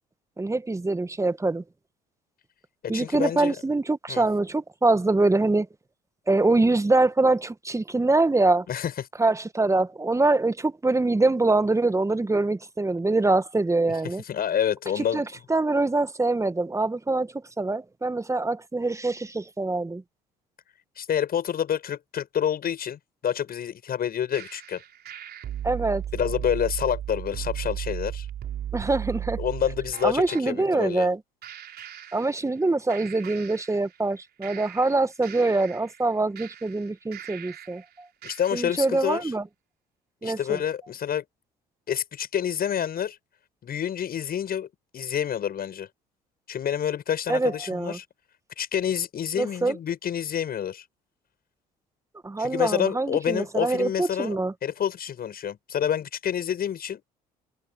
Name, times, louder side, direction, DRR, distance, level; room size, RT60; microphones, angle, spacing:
voice 1, 0.4-1.6 2.9-5.7 6.3-8.6 9.2-14.2 15.0-20.0 25.6-26.0 28.7-29.4 30.0-31.2 32.1-37.8 38.5-39.4 40.2-40.6 47.3-48.0 49.4-49.8 52.2-54.5, right 2 dB, 15° right, 1.8 m, -24 dB
voice 2, 2.8-3.5 4.1-4.2 8.7-8.9 14.3-15.2 21.0-24.8 26.1-28.3 29.4-31.1 38.2-39.3 40.2-41.2 41.9-43.2 43.6-44.7 44.9-45.9 46.5-48.0 48.6-50.8 52.4-54.4 54.6-57.0, left 9 dB, 45° left, 7.9 m, -28 dB
sound 1, 24.3-30.5 31.4-32.6 32.9-34.1 34.4-37.8 38.2-38.9, right 10 dB, 50° right, 4.3 m, -36 dB
hypercardioid pair, 55°, 21 cm